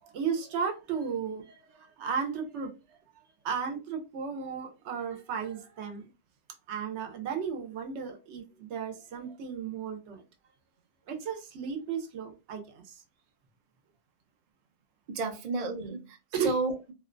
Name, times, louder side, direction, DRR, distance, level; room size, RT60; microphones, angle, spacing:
voice 1, 0.0-3.0 3.4-6.1 6.7-10.2 11.1-13.0 16.3-16.5, right 6 dB, 80° right, 0.9 m, -34 dB
voice 2, 15.1-16.9, right 3 dB, 55° right, 0.4 m, -32 dB
2.5 x 2.1 x 2.4 m
omnidirectional pair, 1.2 m